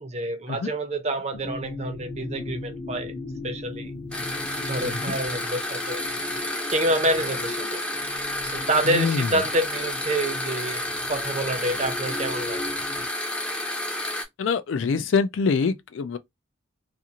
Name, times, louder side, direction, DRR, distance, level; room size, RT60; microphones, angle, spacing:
voice 1, 0.0-3.1 3.4-3.9 4.7-6.0 6.7-7.8 8.4-12.7, right 1 dB, 35° right, 0.6 m, -27 dB
sound 1, 1.3-13.1, left 2 dB, 45° left, 0.7 m, -38 dB
sound 2, 4.1-14.2, left 1 dB, 5° left, 0.5 m, -30 dB
voice 2, 4.8-5.2 8.9-9.3 14.4-16.2, left 5 dB, 75° left, 0.4 m, -25 dB
2.5 x 2.4 x 2.8 m
head